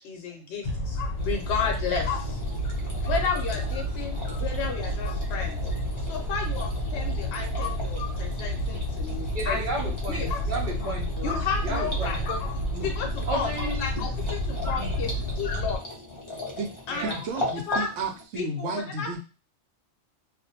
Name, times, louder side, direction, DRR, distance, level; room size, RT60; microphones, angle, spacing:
voice 1, 0.0-2.4 3.1-5.6 6.0-10.3 11.2-12.2 12.8-13.5 13.8-15.8 16.9-17.1 17.7-17.9 18.3-19.2, left 5 dB, 65° left, 1 dB, 0.8 m, -32 dB
sound 1, 0.6-15.8, equal, 85° left, 1.0 m, -30 dB
sound 2, 1.2-18.2, left 2 dB, 35° left, 0.5 m, -39 dB
voice 2, 9.3-11.3 11.6-12.4 13.3-13.9 14.8-15.0 16.9-17.2, right 1 dB, 50° right, -1 dB, 0.7 m, -33 dB
voice 3, 17.0-19.2, right 3 dB, 75° right, 4 dB, 0.9 m, -32 dB
2.4 x 2.1 x 2.7 m, 0.31 s
omnidirectional pair, 1.3 m